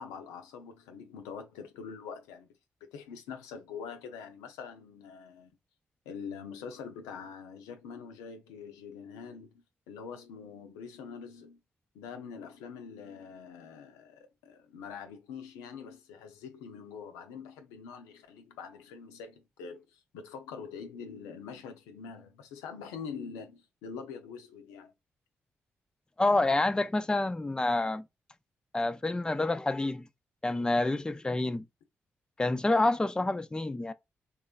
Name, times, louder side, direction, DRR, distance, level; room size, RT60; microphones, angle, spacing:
voice 1, 0.0-2.5 2.8-5.5 6.1-11.6 11.9-24.9, left 6 dB, 90° left, 0.4 m, -44 dB
voice 2, 26.2-28.0 28.7-30.1 30.4-31.6 32.4-33.9, left 2 dB, 15° left, 0.3 m, -28 dB
2.9 x 2.3 x 2.3 m
hypercardioid pair, 40°, 6 cm